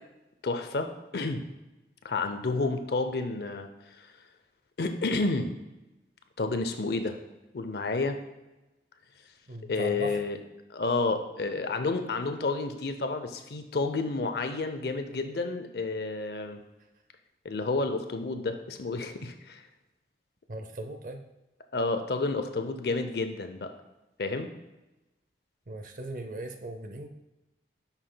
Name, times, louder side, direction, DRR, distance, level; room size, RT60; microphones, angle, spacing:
voice 1, 0.4-1.4 2.0-3.7 4.0-4.1 4.8-5.5 6.4-7.2 7.5-8.2 9.7-10.4 10.7-16.6 17.4-19.6 21.7-23.7 24.2-24.5, left 3 dB, 65° left, 7 dB, 0.6 m, -30 dB
voice 2, 9.5-10.2 20.5-21.2 25.7-27.1, right 1 dB, 45° right, 6 dB, 0.6 m, -38 dB
9.7 x 5.8 x 2.2 m, 1.0 s
head